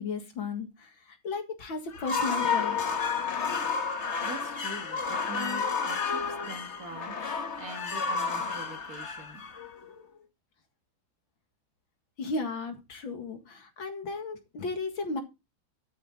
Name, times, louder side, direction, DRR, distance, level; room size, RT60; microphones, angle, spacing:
voice 1, 0.0-3.0 12.2-15.2, left 4 dB, 65° left, 2.6 m, -35 dB
sound 1, 1.9-10.0, left 5 dB, 40° left, 1.3 m, -31 dB
voice 2, 4.2-9.4, right 3 dB, 45° right, 2.2 m, -44 dB
13.0 x 7.7 x 3.7 m
omnidirectional pair, 2.3 m